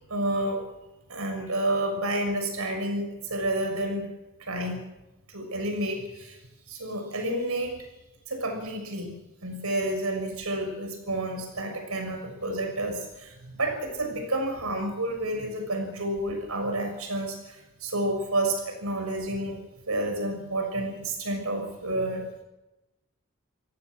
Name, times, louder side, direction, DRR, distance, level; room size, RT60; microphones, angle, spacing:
voice 1, 0.1-0.6 1.1-4.1 4.5-4.8 5.3-6.4 6.7-7.8 8.3-9.1 9.4-19.6 19.9-22.2, right 1 dB, 90° right, 4 dB, 6.4 m, -30 dB
27.0 x 17.5 x 6.3 m, 1.0 s
head